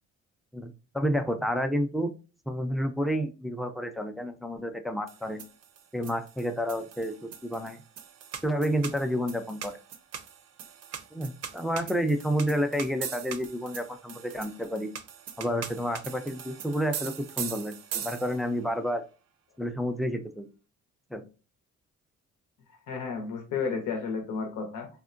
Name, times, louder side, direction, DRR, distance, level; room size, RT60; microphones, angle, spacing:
voice 1, 0.5-2.1 2.5-5.4 5.9-7.8 8.4-9.8 11.1-14.9 15.4-19.0 19.6-20.5 21.1-21.2, equal, ahead, 6 dB, 0.3 m, -30 dB
sound 1, 5.1-18.6, right 8 dB, 55° right, 0.5 m, -41 dB
voice 2, 22.9-24.9, left 5 dB, 85° left, 3 dB, 0.7 m, -32 dB
3.5 x 2.1 x 2.4 m, 0.34 s
cardioid pair, 90°, 30 cm